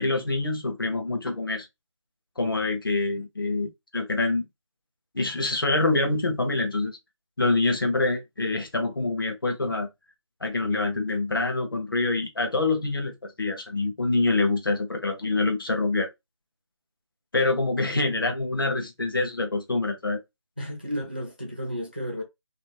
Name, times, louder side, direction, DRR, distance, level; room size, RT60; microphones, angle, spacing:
voice 1, 0.0-1.7 2.4-4.5 5.1-7.0 7.4-9.9 10.4-16.1 17.3-20.2, left 3 dB, 45° left, 0.8 m, -26 dB
voice 2, 17.9-18.3 20.6-22.2, equal, 20° right, 0.4 m, -33 dB
2.6 x 2.5 x 2.9 m
figure-of-eight pair, 175°, 16 cm